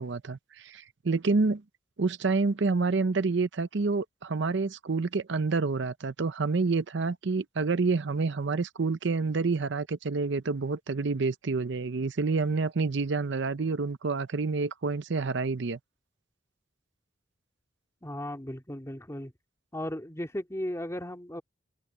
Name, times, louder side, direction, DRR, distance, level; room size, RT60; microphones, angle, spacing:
voice 1, 0.0-1.6 2.0-15.8, right 4 dB, 65° right, 0.7 m, -28 dB
voice 2, 18.0-19.3 19.7-21.4, left 1 dB, 15° left, 2.2 m, -36 dB
head